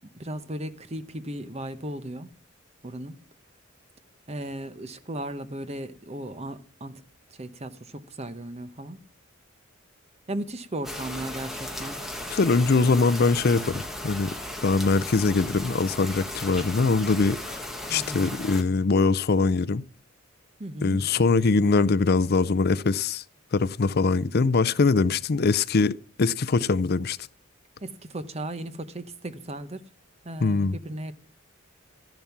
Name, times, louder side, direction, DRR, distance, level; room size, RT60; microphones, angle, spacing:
voice 1, 0.2-2.3 2.8-3.2 4.3-7.0 7.3-9.0 10.3-12.0 17.9-18.4 20.6-21.1 27.8-29.9 30.2-31.1, right 1 dB, 30° right, 0.9 m, -36 dB
sound 1, 10.8-18.6, left 1 dB, ahead, 1.5 m, -36 dB
voice 2, 12.3-14.3 14.6-17.6 17.9-19.8 20.8-23.2 23.5-27.2 30.4-30.8, left 4 dB, 50° left, 0.5 m, -22 dB
12.5 x 10.5 x 5.9 m
head